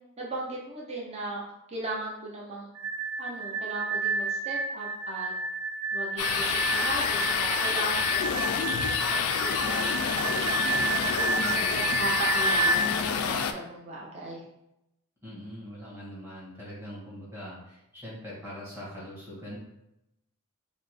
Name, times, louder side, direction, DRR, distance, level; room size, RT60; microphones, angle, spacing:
voice 1, 0.2-1.4 1.7-2.7 3.2-5.3 5.9-8.8 9.1-10.3 10.6-14.4, right 1 dB, 30° right, -4 dB, 0.7 m, -37 dB
sound 1, 2.8-12.9, right 3 dB, 90° right, 0.3 m, -30 dB
sound 2, 6.2-13.5, left 7 dB, 85° left, 0.3 m, -28 dB
voice 2, 11.3-11.9 15.2-19.6, equal, 10° right, -8 dB, 1.5 m, -42 dB
4.8 x 2.2 x 3.1 m, 0.85 s
head